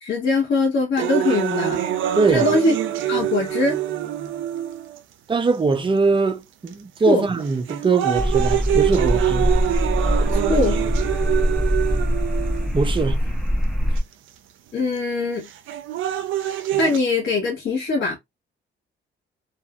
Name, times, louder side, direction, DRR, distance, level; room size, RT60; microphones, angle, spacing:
voice 1, 0.0-1.8 2.3-2.7 3.1-3.8 7.1-7.2 10.3-10.8 14.7-15.5 16.8-18.2, left 3 dB, 75° left, 1.2 m, -22 dB
sound 1, 1.0-5.0 5.7-5.8 6.7-7.0 7.5-13.0 14.0-14.1 15.5-17.0, right 12 dB, 80° right, 0.5 m, -25 dB
voice 2, 2.1-2.5 5.3-9.5 12.7-13.2, right 4 dB, 25° right, 0.5 m, -21 dB
sound 2, 8.2-14.0, equal, ahead, 0.8 m, -22 dB
2.7 x 2.5 x 2.3 m
cardioid pair, 90°, 20 cm